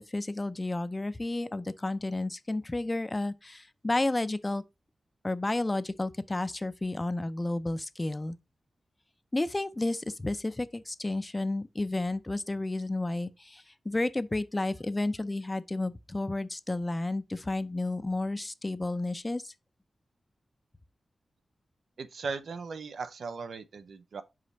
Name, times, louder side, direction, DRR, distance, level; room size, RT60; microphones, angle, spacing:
voice 1, 0.0-4.6 5.2-8.4 9.3-19.5, left 2 dB, 20° left, 0.5 m, -31 dB
voice 2, 22.0-24.2, right 4 dB, 80° right, 0.7 m, -38 dB
5.5 x 5.1 x 4.0 m
wide cardioid pair, 115°, 0 cm